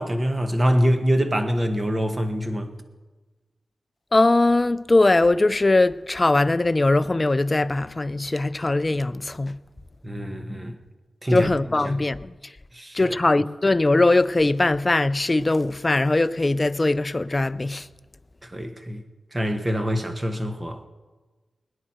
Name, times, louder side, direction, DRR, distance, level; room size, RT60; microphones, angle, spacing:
voice 1, 0.0-2.7 10.0-10.7 11.2-11.5 11.8-12.0 12.7-13.2 18.4-19.0 19.3-20.9, equal, 25° right, 1.2 m, -25 dB
voice 2, 4.1-9.6 11.3-12.3 12.9-17.9, left 2 dB, 25° left, 0.4 m, -20 dB
21.0 x 9.9 x 4.4 m
wide cardioid pair, 95°, 0 cm